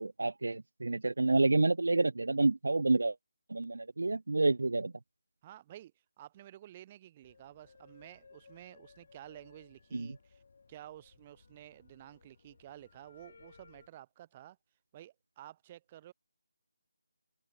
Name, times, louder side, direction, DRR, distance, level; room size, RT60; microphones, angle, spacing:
voice 1, 0.0-3.2 3.5-4.9 9.9-10.2, right 2 dB, 80° right, 0.6 m, -29 dB
voice 2, 5.4-5.9 6.2-10.4 10.7-14.6 14.9-16.1, right 13 dB, 20° right, 1.0 m, -52 dB
sound 1, 7.2-13.9, left 4 dB, 50° left, 3.9 m, -61 dB
figure-of-eight pair, 165°, 0 cm